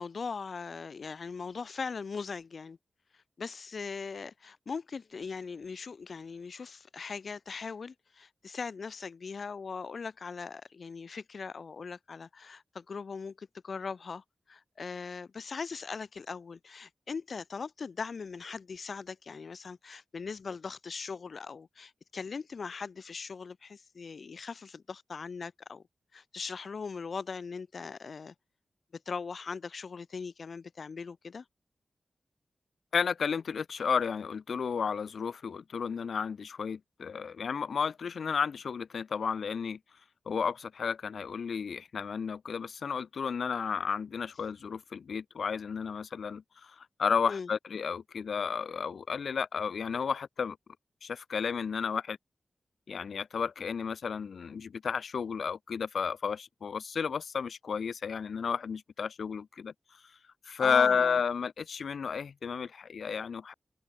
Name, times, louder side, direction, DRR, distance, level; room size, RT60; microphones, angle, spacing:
voice 1, 0.0-2.8 3.1-25.8 26.1-28.3 29.1-31.5 47.3-47.5 60.6-61.2, left 5 dB, 55° left, 1.9 m, -40 dB
voice 2, 32.9-39.8 40.3-50.6 51.0-52.2 52.9-59.7 60.4-63.5, left 6 dB, 75° left, 1.0 m, -32 dB
open air
wide cardioid pair, 150°, 0 cm